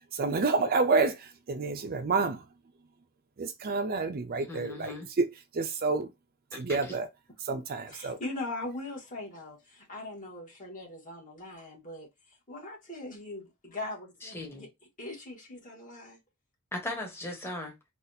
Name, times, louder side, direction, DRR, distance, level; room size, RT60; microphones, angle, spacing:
voice 1, 0.1-2.4 3.4-5.3 5.5-6.1 6.6-7.1 7.4-8.2, right 4 dB, 45° right, 0.4 m, -29 dB
voice 2, 4.5-5.1 6.5-7.0 14.2-14.7 16.7-17.7, left 1 dB, 10° left, 1.2 m, -38 dB
voice 3, 7.9-12.1 12.5-14.7 15.0-16.2, left 2 dB, 40° left, 1.6 m, -40 dB
4.0 x 2.4 x 2.7 m
head